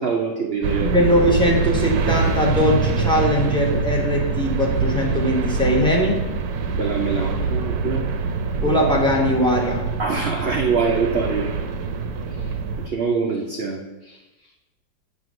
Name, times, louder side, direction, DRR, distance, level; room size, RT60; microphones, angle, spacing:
voice 1, 0.0-1.0 6.7-8.1 10.0-11.5 12.3-12.5 12.8-14.2, right 5 dB, 90° right, 2 dB, 0.5 m, -24 dB
sound 1, 0.6-12.9, right 4 dB, 70° right, 1.0 m, -24 dB
voice 2, 0.8-6.2 8.6-9.8, equal, 5° left, -3 dB, 1.0 m, -20 dB
7.6 x 3.3 x 6.3 m, 1.1 s
omnidirectional pair, 1.9 m